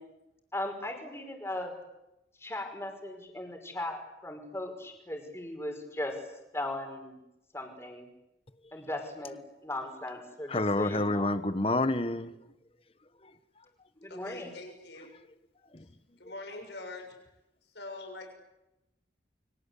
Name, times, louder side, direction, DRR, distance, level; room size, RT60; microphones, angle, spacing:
voice 1, 0.5-1.7 2.4-6.1 6.5-7.2 7.5-8.1 8.7-11.3 14.0-14.5, left 1 dB, 15° left, 5.4 m, -38 dB
voice 2, 10.5-12.3 13.2-13.3 15.7-15.8, left 2 dB, 30° left, 1.2 m, -28 dB
voice 3, 14.1-15.1 16.2-17.2 17.6-18.3, left 2 dB, 75° left, 7.0 m, -44 dB
29.5 x 24.5 x 8.4 m
head